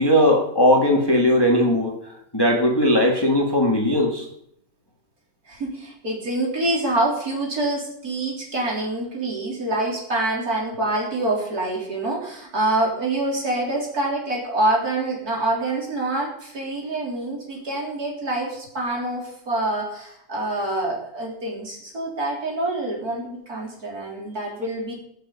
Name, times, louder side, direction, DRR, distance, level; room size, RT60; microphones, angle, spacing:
voice 1, 0.0-4.3, left 1 dB, 15° left, 0 dB, 1.8 m, -19 dB
voice 2, 5.5-24.9, right 2 dB, 55° right, -2 dB, 4.1 m, -26 dB
17.0 x 6.8 x 6.9 m, 0.73 s
omnidirectional pair, 1.9 m